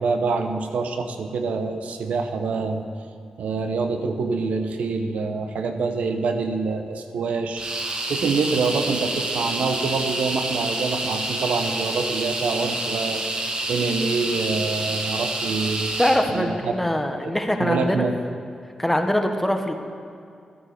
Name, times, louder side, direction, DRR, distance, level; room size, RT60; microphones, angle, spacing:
voice 1, 0.0-2.9 3.4-7.6 8.1-15.9 16.3-16.8 17.2-17.3 17.6-18.2, right 4 dB, 85° right, 7 dB, 0.8 m, -26 dB
sound 1, 7.6-16.3, right 2 dB, 45° right, 1.4 m, -28 dB
voice 2, 16.0-18.0 18.8-19.7, left 1 dB, 10° left, 5 dB, 1.1 m, -22 dB
13.0 x 8.6 x 4.9 m, 2.4 s
cardioid pair, 65°, 2 cm